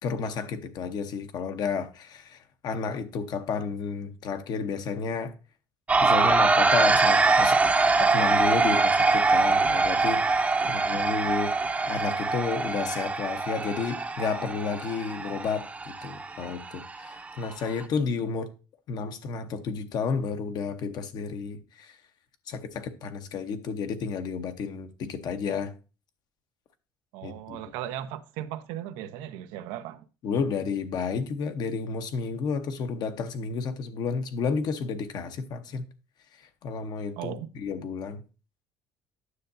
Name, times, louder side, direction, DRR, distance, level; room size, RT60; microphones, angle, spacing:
voice 1, 0.0-5.3 6.0-7.6 8.0-11.6 11.9-18.5 18.9-22.0 22.5-25.7 27.2-27.6 30.2-35.9 36.6-38.2, left 5 dB, 55° left, 1.0 m, -31 dB
sound 1, 5.9-17.8, right 3 dB, 15° right, 0.7 m, -24 dB
voice 2, 10.6-11.0 27.1-30.0 37.2-37.5, right 11 dB, 85° right, 0.6 m, -37 dB
9.6 x 6.5 x 2.7 m
cardioid pair, 110°, 8 cm